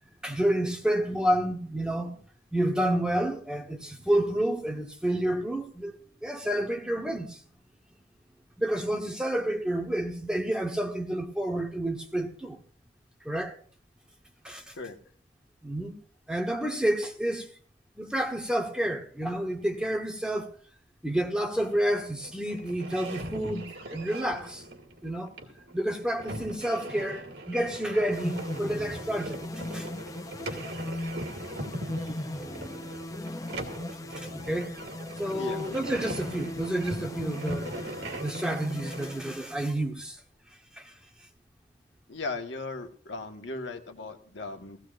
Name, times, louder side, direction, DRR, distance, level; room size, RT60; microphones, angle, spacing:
voice 1, 0.2-2.2 2.5-7.4 8.6-12.6 13.2-13.6 14.4-14.7 15.6-15.9 16.3-17.5 18.0-20.5 21.0-24.6 25.0-25.3 25.7-29.4 29.7-29.9 30.5-30.6 34.2-34.7 35.2-37.7 38.2-40.2 40.8-40.9, right 1 dB, 5° right, 1.2 m, -29 dB
sound 1, 21.5-39.1, right 1 dB, 65° right, 2.3 m, -41 dB
sound 2, 28.1-40.0, left 1 dB, 20° left, 0.6 m, -38 dB
voice 2, 42.1-44.8, left 3 dB, 85° left, 1.6 m, -37 dB
16.5 x 16.5 x 2.6 m
head